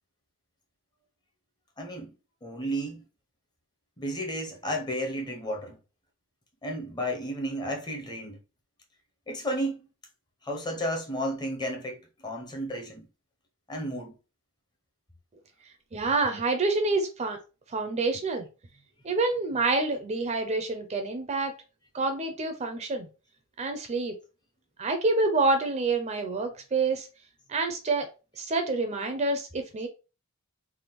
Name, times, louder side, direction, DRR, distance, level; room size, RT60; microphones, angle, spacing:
voice 1, 1.8-2.1 2.4-3.0 4.0-5.8 6.6-8.4 9.3-9.9 10.4-13.1 13.7-14.1, equal, 20° left, 0.6 m, -32 dB
voice 2, 15.9-17.4 17.7-18.5 19.0-21.5 21.9-23.1 23.6-24.1 24.8-27.1 27.5-29.9, right 3 dB, 30° right, 0.4 m, -27 dB
3.4 x 2.2 x 2.9 m
head